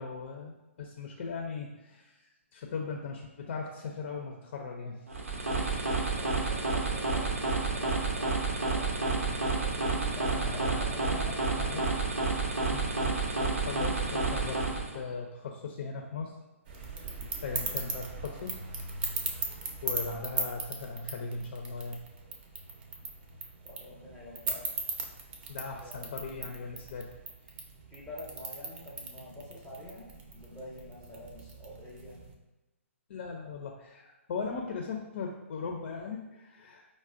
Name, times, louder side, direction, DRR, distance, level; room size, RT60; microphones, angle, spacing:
voice 1, 0.0-2.2 2.5-5.0 9.0-9.5 10.3-10.8 11.6-11.8 12.7-16.4 17.4-18.6 19.8-22.0 25.5-27.1 33.1-36.9, left 4 dB, 50° left, 1 dB, 0.4 m, -39 dB
sound 1, 5.1-15.0, right 3 dB, 80° right, 0.7 m, -30 dB
voice 2, 6.2-9.2 9.5-11.9 23.6-24.7 25.8-26.1 27.9-32.2, left 1 dB, 5° left, -7 dB, 0.7 m, -47 dB
sound 2, 16.6-32.3, right 4 dB, 40° right, 0.6 m, -39 dB
4.8 x 2.1 x 2.4 m, 1.1 s
figure-of-eight pair, 130°, 8 cm